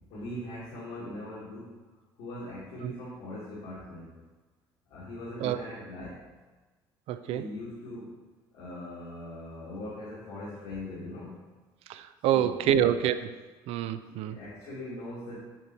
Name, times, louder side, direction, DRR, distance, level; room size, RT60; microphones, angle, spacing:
voice 1, 0.1-1.8 2.2-4.1 4.9-6.2 7.3-8.1 8.5-11.4 12.3-12.8 14.2-15.4, left 1 dB, 75° left, -8 dB, 1.7 m, -40 dB
voice 2, 7.1-7.5 11.9-13.4 13.7-14.4, right 10 dB, 65° right, 12 dB, 0.4 m, -27 dB
7.4 x 4.0 x 4.1 m, 1.3 s
hypercardioid pair, 60°, 11 cm